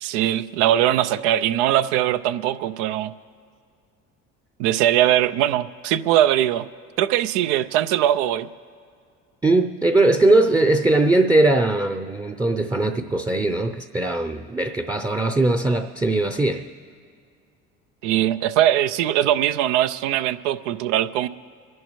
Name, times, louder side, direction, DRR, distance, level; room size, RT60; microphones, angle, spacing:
voice 1, 0.0-3.1 4.6-6.7 7.0-8.5 18.0-21.3, right 12 dB, 75° right, 13 dB, 0.6 m, -21 dB
voice 2, 9.4-16.6, right 2 dB, 10° right, 6 dB, 0.6 m, -20 dB
27.0 x 11.0 x 3.1 m, 2.3 s
hypercardioid pair, 70°, 36 cm